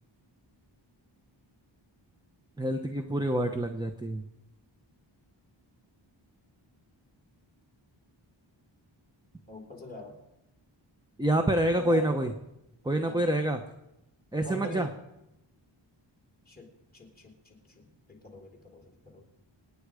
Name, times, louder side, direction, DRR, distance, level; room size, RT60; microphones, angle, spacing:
voice 1, 2.6-4.2 11.2-12.3 12.8-13.6 14.3-14.9, right 1 dB, 10° right, 6 dB, 0.9 m, -27 dB
voice 2, 9.5-10.2 11.6-12.3 13.0-13.3 14.4-14.9 16.5-19.2, left 2 dB, 20° left, 0 dB, 3.8 m, -44 dB
26.5 x 9.6 x 5.0 m, 0.89 s
wide cardioid pair, 125°, 47 cm